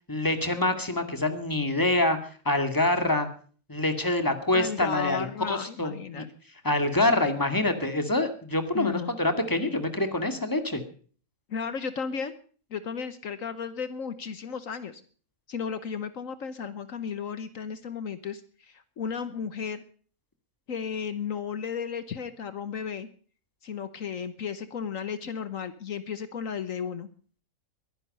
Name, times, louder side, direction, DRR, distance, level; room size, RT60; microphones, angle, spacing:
voice 1, 0.1-2.2 2.5-3.3 3.7-6.2 6.6-10.8, left 2 dB, 15° left, 8 dB, 2.1 m, -26 dB
voice 2, 4.5-6.3 8.7-9.1 11.5-12.3 12.7-15.0 15.5-19.8 20.7-23.1 23.6-27.1, left 6 dB, 65° left, 13 dB, 1.4 m, -34 dB
22.0 x 10.5 x 5.4 m, 0.44 s
omnidirectional pair, 1.5 m